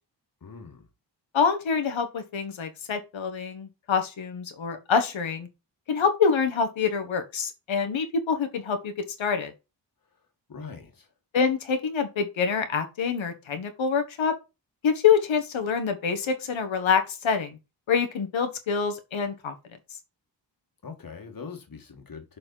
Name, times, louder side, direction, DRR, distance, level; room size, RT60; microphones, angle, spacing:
voice 1, 0.4-0.9 10.5-11.1 20.8-22.4, left 5 dB, 50° left, 1.6 m, -42 dB
voice 2, 1.3-5.5 5.9-9.5 11.3-14.3 14.8-17.6 17.9-19.5, left 6 dB, 90° left, 1.2 m, -26 dB
6.8 x 4.2 x 3.9 m
wide cardioid pair, 115°, 45 cm